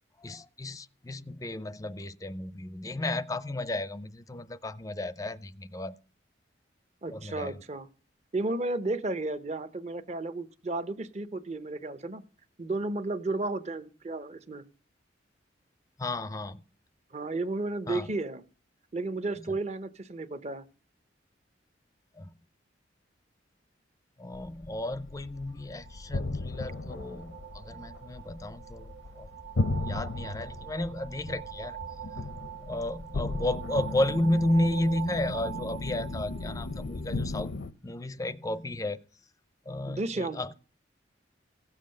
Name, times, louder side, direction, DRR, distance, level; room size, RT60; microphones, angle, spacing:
voice 1, 0.2-6.0 7.1-7.6 16.0-16.6 17.9-18.1 22.2-22.3 24.2-29.3 29.6-31.8 32.7-37.5 37.8-39.0 39.7-40.5, left 1 dB, 20° left, 0.5 m, -33 dB
voice 2, 7.0-7.9 8.3-12.2 12.6-14.6 17.1-18.4 18.9-20.6 39.9-40.4, right 2 dB, 35° right, 0.8 m, -33 dB
sound 1, 24.3-37.7, left 2 dB, 80° left, 0.7 m, -36 dB
sound 2, 25.4-37.0, right 12 dB, 75° right, 1.3 m, -44 dB
16.0 x 7.4 x 6.5 m
head